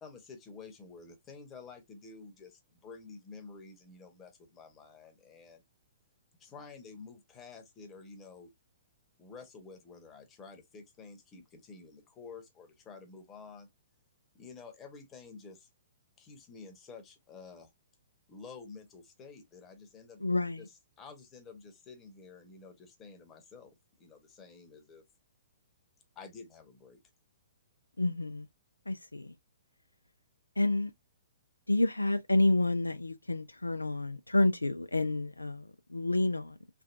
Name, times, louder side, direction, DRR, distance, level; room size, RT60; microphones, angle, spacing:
voice 1, 0.0-5.6 6.4-8.5 9.2-13.7 14.3-15.7 16.2-17.7 18.3-20.2 20.6-25.0 26.1-27.0, left 4 dB, 20° left, 1.0 m, -50 dB
voice 2, 20.2-20.7 28.0-28.5 28.9-29.3 30.6-30.9 31.7-36.6, left 2 dB, 85° left, 0.3 m, -29 dB
3.3 x 2.2 x 2.5 m
figure-of-eight pair, 120°, 0 cm